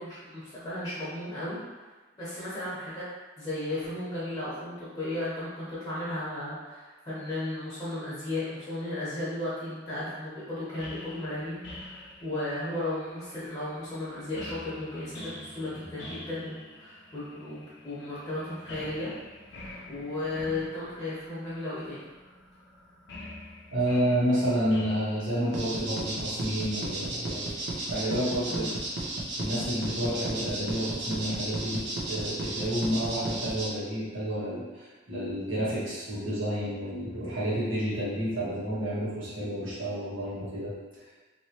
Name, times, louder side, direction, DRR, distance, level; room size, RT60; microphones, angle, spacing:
voice 1, 0.0-1.6 2.2-3.1 3.4-19.1 19.5-22.1 28.4-28.7, left 1 dB, 25° left, -11 dB, 0.9 m, -35 dB
sound 1, 10.8-28.1, left 1 dB, 65° left, 0.5 m, -47 dB
voice 2, 23.7-27.6 27.9-28.8 29.4-41.0, equal, 80° right, -9 dB, 1.3 m, -30 dB
sound 2, 25.5-33.7, right 2 dB, 60° right, 0.7 m, -33 dB
3.0 x 2.9 x 2.9 m, 1.3 s
head